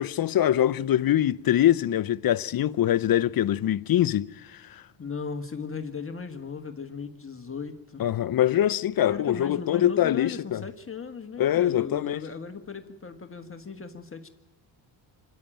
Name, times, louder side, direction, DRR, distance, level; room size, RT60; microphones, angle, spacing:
voice 1, 0.0-4.8 8.0-10.6 11.4-12.2, left 11 dB, 50° left, 0.6 m, -24 dB
voice 2, 5.0-8.0 9.1-14.3, left 5 dB, 25° left, 1.5 m, -37 dB
25.0 x 11.5 x 9.0 m
cardioid pair, 85°, 47 cm